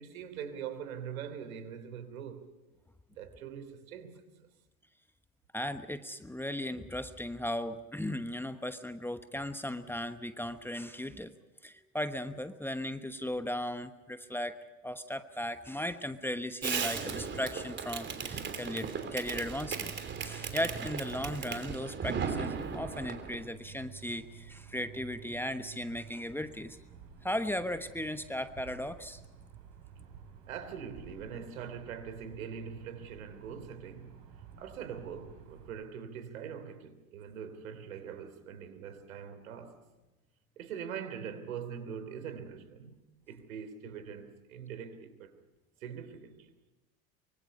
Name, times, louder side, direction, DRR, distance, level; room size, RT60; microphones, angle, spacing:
voice 1, 0.0-2.5 3.1-4.3 30.5-34.2 34.6-39.8 40.6-43.0 43.3-45.3 45.8-46.5, right 7 dB, 75° right, 3.3 m, -43 dB
voice 2, 5.5-11.3 11.6-14.6 14.8-19.9 20.2-26.8 27.2-29.2, left 1 dB, 5° left, 1.1 m, -37 dB
Fireworks, 16.6-23.4, right 6 dB, 25° right, 3.2 m, -37 dB
sound 1, 19.6-35.7, right 8 dB, 50° right, 6.7 m, -52 dB
24.5 x 24.0 x 5.4 m
hypercardioid pair, 90°, 41 cm